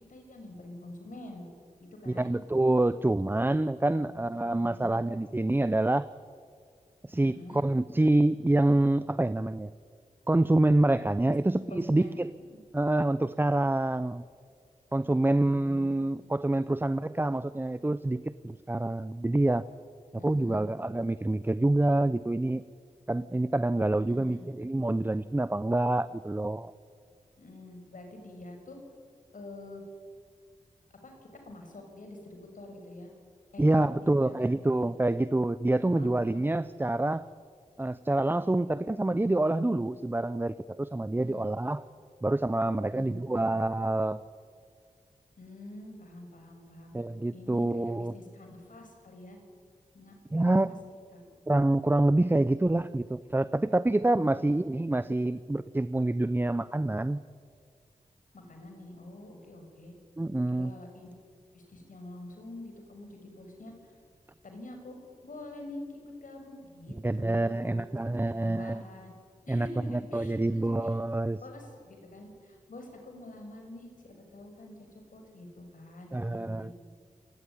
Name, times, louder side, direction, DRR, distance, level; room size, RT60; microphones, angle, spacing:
voice 1, 0.1-1.5 1.8-2.3 3.9-5.0 7.3-7.7 11.7-12.2 20.2-20.6 24.0-24.4 27.4-28.8 29.3-29.8 31.0-31.1 31.5-33.1 33.5-34.9 35.9-36.4 41.2-41.5 42.8-43.6 45.4-46.9 47.3-49.4 49.9-51.3 54.1-54.8 58.3-60.0 60.5-61.1 61.5-63.7 64.4-65.0 65.2-67.8 68.2-69.1 69.5-70.9 71.4-76.8, left 1 dB, 75° left, 3 dB, 6.2 m, -47 dB
voice 2, 2.1-6.1 7.0-9.7 10.3-12.3 12.7-14.2 14.9-19.6 20.2-22.6 23.1-26.7 33.6-37.3 37.8-41.8 42.2-44.2 46.9-48.1 50.3-50.8 51.5-57.2 60.2-60.7 67.0-68.8 69.5-71.4 76.1-76.7, right 2 dB, 15° right, 15 dB, 0.6 m, -27 dB
27.0 x 18.5 x 9.9 m, 2.1 s
wide cardioid pair, 80°, 14 cm